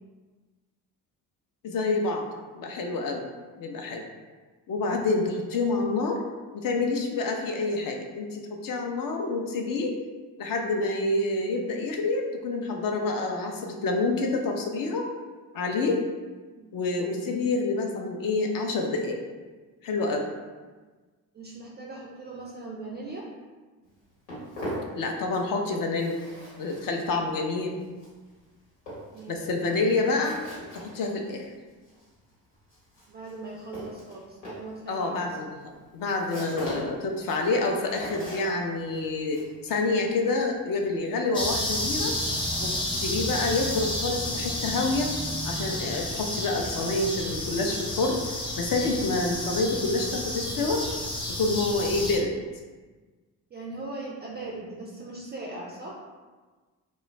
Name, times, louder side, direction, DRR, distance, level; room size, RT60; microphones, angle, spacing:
voice 1, 1.6-2.3 2.5-3.2 3.6-4.0 4.7-6.2 6.5-9.9 10.4-15.1 15.5-16.0 16.7-19.2 19.8-20.3 24.9-26.2 26.6-27.7 29.3-30.4 30.7-31.5 34.9-42.1 42.6-45.1 45.4-48.2 48.6-50.8 51.4-52.3, left 3 dB, 45° left, 2 dB, 0.5 m, -27 dB
voice 2, 21.3-23.3 29.1-29.8 33.1-35.4 53.5-56.0, right 2 dB, 25° right, -3 dB, 0.3 m, -40 dB
Walk footsteps, 23.8-25.6 25.8-41.2, equal, 85° left, 1.2 m, -42 dB
sound 1, 41.3-52.2, left 1 dB, 10° left, 0.7 m, -31 dB
2.2 x 2.0 x 3.2 m, 1.3 s
hypercardioid pair, 40°, 49 cm